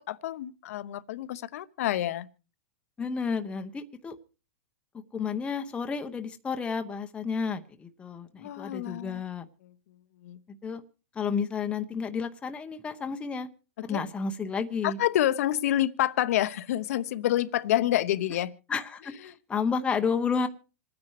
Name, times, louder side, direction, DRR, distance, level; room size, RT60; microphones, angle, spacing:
voice 1, 0.0-2.3 8.4-9.2 9.6-9.7 10.2-10.4 13.8-14.0 14.8-18.5 19.2-19.3, left 13 dB, 65° left, 0.9 m, -28 dB
voice 2, 3.0-4.2 5.1-9.4 10.6-10.8 11.1-13.5 13.8-15.0 18.7-20.5, left 5 dB, 15° left, 0.8 m, -31 dB
27.0 x 9.7 x 3.1 m
hypercardioid pair, 135°, 9 cm